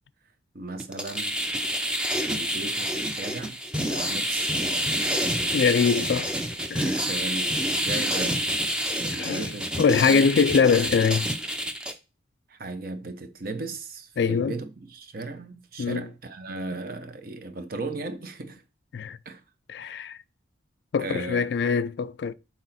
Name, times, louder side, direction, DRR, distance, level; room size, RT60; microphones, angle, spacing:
voice 1, 0.5-1.4 2.2-5.1 6.8-8.5 9.0-9.7 10.0-10.3 12.5-18.6 19.3-19.4 19.8-20.1 21.0-21.4, right 2 dB, 50° right, 0.7 m, -36 dB
sound 1, 0.8-11.9, equal, 5° right, 0.5 m, -28 dB
voice 2, 5.5-6.3 6.7-6.9 9.1-9.5 9.8-11.3 14.2-14.5 15.8-16.1 18.9-19.2 19.7-20.2 20.9-22.3, left 6 dB, 60° left, 0.3 m, -23 dB
6.2 x 3.9 x 4.1 m
head